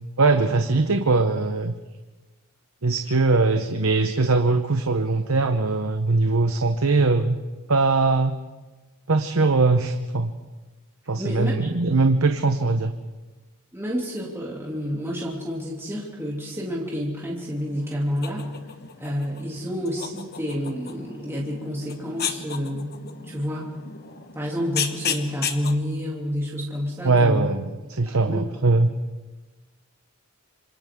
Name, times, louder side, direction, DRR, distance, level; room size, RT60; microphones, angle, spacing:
voice 1, 0.2-1.7 2.8-7.4 7.7-8.4 9.1-10.3 11.1-12.9 27.0-27.6 28.0-28.9, right 3 dB, 70° right, 7 dB, 0.9 m, -21 dB
voice 2, 11.2-11.7 13.7-18.4 19.0-23.7 24.3-27.5 28.1-28.7, equal, 10° right, -4 dB, 2.8 m, -29 dB
sound 1, 17.4-25.8, left 7 dB, 45° left, 1.3 m, -34 dB
27.0 x 26.0 x 3.7 m, 1.2 s
head